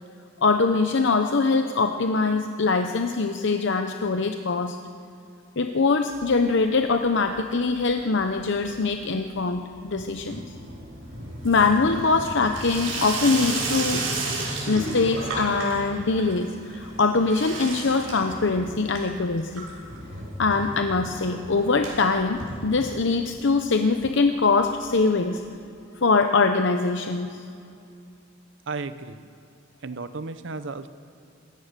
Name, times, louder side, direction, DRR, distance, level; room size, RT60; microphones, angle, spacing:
voice 1, 0.4-4.8 5.6-10.4 11.4-14.0 14.7-19.7 20.4-25.4 26.0-27.4, left 4 dB, 65° left, 6 dB, 0.8 m, -23 dB
Water tap faucet / Sink (filling or washing), 6.1-6.9 7.2-7.7 8.0-23.3 23.6-23.7 23.9-24.0 24.2-24.3 25.4-25.5, right 2 dB, 85° right, 6.5 m, -34 dB
voice 2, 28.7-29.3 29.8-30.9, right 3 dB, 65° right, 12 dB, 0.8 m, -34 dB
26.5 x 15.0 x 6.7 m, 2.5 s
head